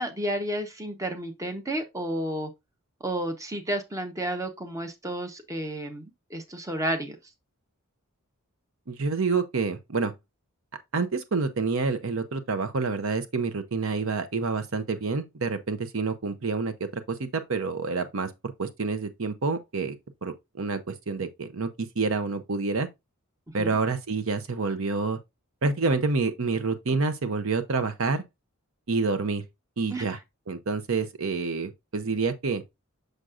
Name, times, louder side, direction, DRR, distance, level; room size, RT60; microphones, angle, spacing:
voice 1, 0.0-2.5 3.0-7.2 23.6-23.8 29.9-30.0, right 1 dB, 15° right, 0.9 m, -31 dB
voice 2, 8.9-10.1 10.9-18.3 18.6-20.0 20.2-22.9 23.5-25.2 25.6-28.2 28.9-29.4 29.8-30.2 30.5-32.6, right 4 dB, 60° right, 0.7 m, -28 dB
6.6 x 6.2 x 2.5 m
head